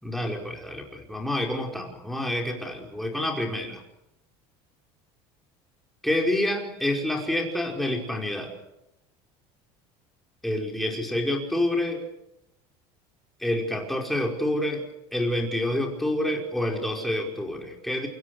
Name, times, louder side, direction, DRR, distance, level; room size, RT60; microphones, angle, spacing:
voice 1, 0.0-3.8 6.0-8.5 10.4-12.0 13.4-14.8 15.1-18.1, left 1 dB, ahead, 1 dB, 5.3 m, -28 dB
28.5 x 23.0 x 6.5 m, 0.85 s
cardioid pair, 155°, 13 cm